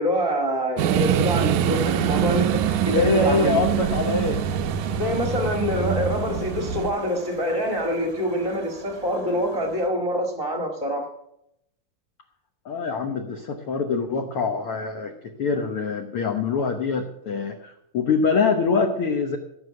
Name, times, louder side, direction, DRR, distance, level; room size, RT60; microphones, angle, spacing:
voice 1, 0.0-3.6 5.0-11.1, equal, 20° right, 3 dB, 1.0 m, -26 dB
sound 1, 0.8-6.9, right 9 dB, 75° right, 1.8 m, -24 dB
sound 2, 1.6-9.9, right 3 dB, 40° right, 1.0 m, -42 dB
voice 2, 2.8-4.4 5.8-5.9 12.6-15.1 15.4-19.4, left 4 dB, 65° left, 4 dB, 1.4 m, -24 dB
16.0 x 6.8 x 7.7 m, 0.81 s
omnidirectional pair, 3.9 m